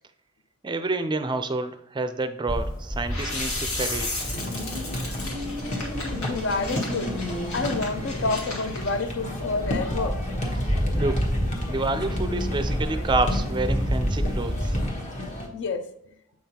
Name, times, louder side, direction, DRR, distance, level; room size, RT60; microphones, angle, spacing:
voice 1, 0.6-4.1 10.9-11.3 11.7-14.8, right 2 dB, 20° right, 0.4 m, -28 dB
sound 1, 2.5-14.9, equal, 15° left, 1.4 m, -30 dB
sound 2, 3.1-8.9, left 2 dB, 85° left, 1.9 m, -34 dB
sound 3, 4.2-15.5, left 1 dB, 35° left, 1.1 m, -32 dB
voice 2, 6.1-7.2 7.5-10.2 15.5-15.9, left 3 dB, 55° left, 0.6 m, -29 dB
7.7 x 5.4 x 2.9 m
head